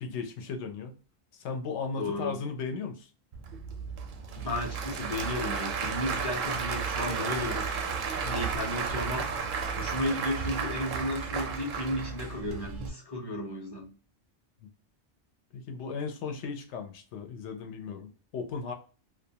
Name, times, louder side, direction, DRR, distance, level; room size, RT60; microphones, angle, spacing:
voice 1, 0.0-1.0 1.3-3.1 8.2-8.4 14.6-14.7 15.5-18.7, left 5 dB, 85° left, 4 dB, 0.9 m, -36 dB
voice 2, 2.0-2.4 4.4-7.9 8.3-9.3 9.6-13.9, left 1 dB, 30° left, -2 dB, 0.5 m, -34 dB
Applause / Crowd, 3.3-12.9, right 5 dB, 60° right, 0.6 m, -33 dB
2.3 x 2.3 x 2.7 m, 0.37 s
omnidirectional pair, 1.1 m